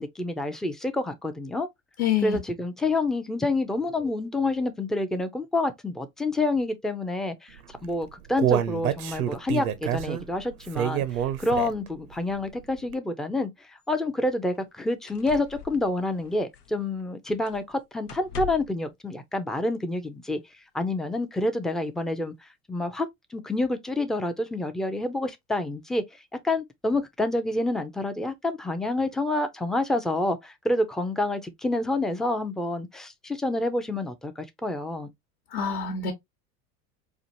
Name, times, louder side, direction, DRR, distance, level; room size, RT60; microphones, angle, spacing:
voice 1, 0.0-1.7 2.2-20.4 20.7-26.0 26.4-35.1, left 2 dB, ahead, 0.4 m, -28 dB
voice 2, 2.0-2.4 35.5-36.1, left 7 dB, 65° left, 1.1 m, -26 dB
Human voice, 7.8-12.0 12.3-12.4 12.9-13.0, right 10 dB, 75° right, 0.7 m, -27 dB
sound 1, 13.8-13.9 14.5-14.7 15.1-17.0 17.4-17.7 18.0-18.8 19.9-20.0, left 9 dB, 90° left, 0.6 m, -41 dB
4.5 x 2.4 x 2.7 m
hypercardioid pair, 75°, 44 cm